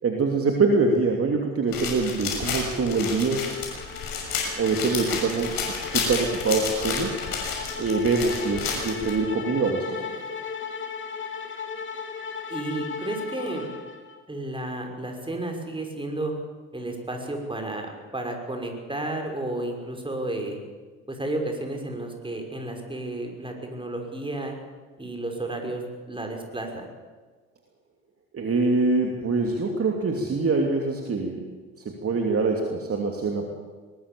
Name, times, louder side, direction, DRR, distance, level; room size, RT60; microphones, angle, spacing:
voice 1, 0.0-3.4 4.6-7.2 7.8-10.0 28.3-31.4 31.8-33.5, right 3 dB, 35° right, 2 dB, 3.1 m, -24 dB
sound 1, 1.7-9.1, left 5 dB, 60° left, 6.5 m, -31 dB
sound 2, 2.9-14.2, left 5 dB, 30° left, 3.4 m, -37 dB
voice 2, 12.5-13.7 14.3-16.3 16.7-20.6 21.1-24.5 25.0-26.9, right 2 dB, 15° right, 3 dB, 5.9 m, -32 dB
22.0 x 19.5 x 7.1 m, 1.4 s
hypercardioid pair, 55°, 39 cm